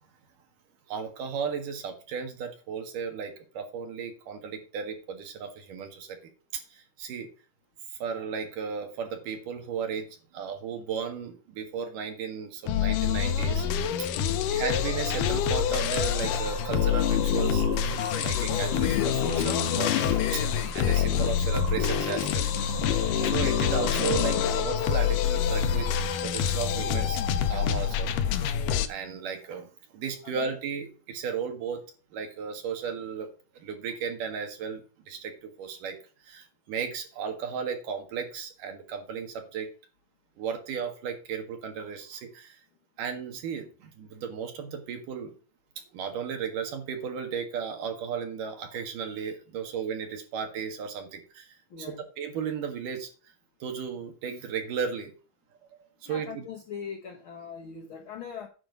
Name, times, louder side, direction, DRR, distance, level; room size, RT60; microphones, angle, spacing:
voice 1, 0.9-6.2 6.5-7.3 8.0-13.7 14.0-14.2 14.5-17.6 18.1-22.5 23.2-25.9 26.2-28.5 28.9-31.8 32.1-33.3 33.5-36.0 36.2-39.7 40.4-42.6 43.0-45.3 45.9-53.1 53.6-55.1 56.0-56.5, right 6 dB, 75° right, 3.2 m, -35 dB
sound 1, 12.7-28.9, left 8 dB, 80° left, 2.4 m, -26 dB
sound 2, 14.0-26.5, right 5 dB, 45° right, 2.3 m, -42 dB
voice 2, 14.1-14.6 30.4-30.6 51.7-52.0 56.0-58.5, left 7 dB, 60° left, 1.3 m, -41 dB
9.9 x 4.5 x 6.8 m
omnidirectional pair, 3.8 m